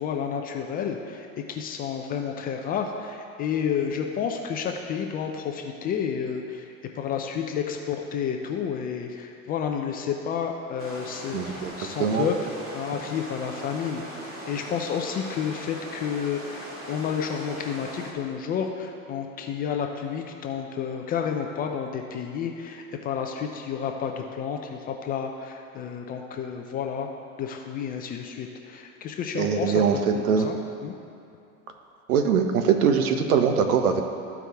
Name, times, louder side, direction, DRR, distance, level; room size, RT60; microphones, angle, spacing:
voice 1, 0.0-27.1 27.4-29.8 30.1-30.5 30.8-30.9, left 7 dB, 20° left, 3 dB, 0.4 m, -30 dB
sound 1, 10.8-18.1, right 1 dB, 30° right, 1.9 m, -40 dB
voice 2, 11.3-11.7 12.0-12.3 29.4-30.5 32.1-34.0, right 6 dB, 75° right, 6 dB, 0.9 m, -22 dB
13.5 x 4.8 x 3.4 m, 2.5 s
hypercardioid pair, 105°, 43 cm